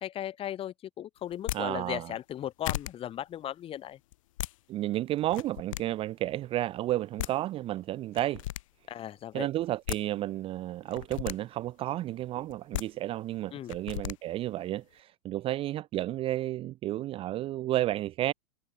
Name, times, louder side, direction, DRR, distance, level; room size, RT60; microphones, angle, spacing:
voice 1, 0.0-4.0 8.9-9.5 13.5-13.7, left 11 dB, 25° left, 1.4 m, -37 dB
sound 1, 1.3-1.6 2.3-2.4 2.6-2.9 4.1-4.5 5.2-5.8 6.9-7.0 7.2-7.3 8.1-8.6 9.6-10.0 10.9-11.4 12.5-12.8 13.7-14.1, left 16 dB, 55° left, 0.6 m, -34 dB
voice 2, 1.5-2.1 4.7-8.4 9.3-18.3, right 14 dB, 25° right, 0.6 m, -32 dB
figure-of-eight pair, 90°, 21 cm